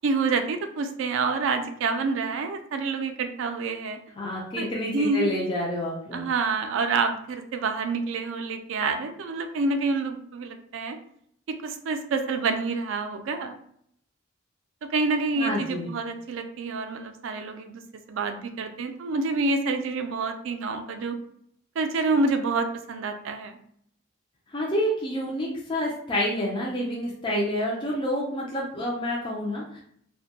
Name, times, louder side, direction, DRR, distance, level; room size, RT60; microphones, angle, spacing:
voice 1, 0.0-4.0 4.6-5.3 6.1-11.0 11.5-13.5 14.9-17.8 18.1-21.2 21.8-23.6, right 4 dB, 75° right, 6 dB, 0.3 m, -27 dB
voice 2, 4.2-6.3 15.4-15.9 24.5-29.8, equal, 25° left, -4 dB, 0.4 m, -28 dB
2.2 x 2.1 x 2.8 m, 0.67 s
head